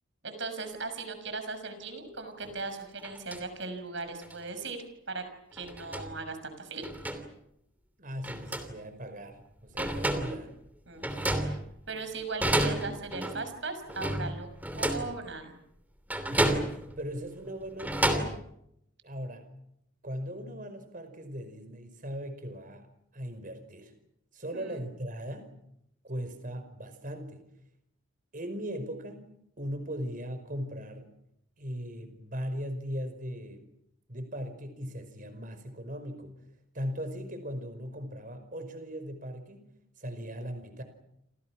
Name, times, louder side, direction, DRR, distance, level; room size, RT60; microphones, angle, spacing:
voice 1, 0.2-5.2 5.5-6.9 10.1-10.3 10.9-11.6 11.9-14.5 14.7-15.6 24.5-24.8, right 3 dB, 60° right, 8 dB, 6.2 m, -38 dB
sound 1, 2.4-2.5 3.0-3.4 4.2-4.3 5.6-6.2 6.8-7.3 8.2-8.8 9.4-9.5 9.8-10.5 11.0-12.0 12.4-13.5 13.9-15.2 16.1-17.0 17.6-18.4, right 1 dB, 10° right, 3.0 m, -30 dB
voice 2, 8.0-10.5 11.0-11.7 16.3-18.4 19.0-19.5 20.0-22.8 23.1-23.9 24.3-25.5 26.0-27.4 28.3-29.3 29.6-31.1 31.6-33.7 34.1-36.3 36.7-39.7 40.0-40.8, equal, 40° right, 9 dB, 5.2 m, -38 dB
29.5 x 27.0 x 6.2 m, 0.79 s
head